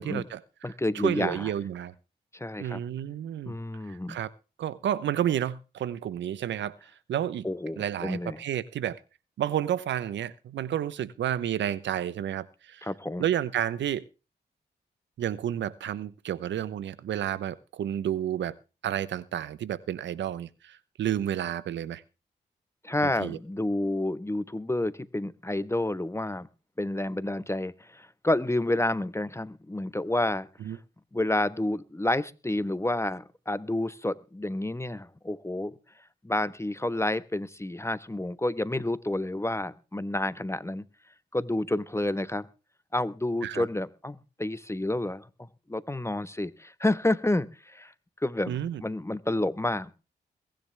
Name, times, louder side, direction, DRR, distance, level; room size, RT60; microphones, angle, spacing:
voice 1, 0.0-1.9 2.6-3.5 3.9-4.3 4.6-6.8 7.1-7.5 7.8-9.0 9.4-12.9 13.2-14.0 15.2-18.5 18.8-22.0 23.0-23.4 30.6-30.8 43.4-43.6 48.5-48.8, right 10 dB, 85° right, 0.9 m, -31 dB
voice 2, 0.6-1.5 2.3-2.8 3.5-4.2 7.4-8.4 12.8-13.2 22.8-26.5 26.8-30.5 31.1-35.8 36.2-40.8 41.3-42.5 42.9-45.2 45.7-47.9 48.2-50.0, left 1 dB, 15° left, 1.2 m, -29 dB
22.0 x 10.5 x 3.4 m
supercardioid pair, 45°, 19 cm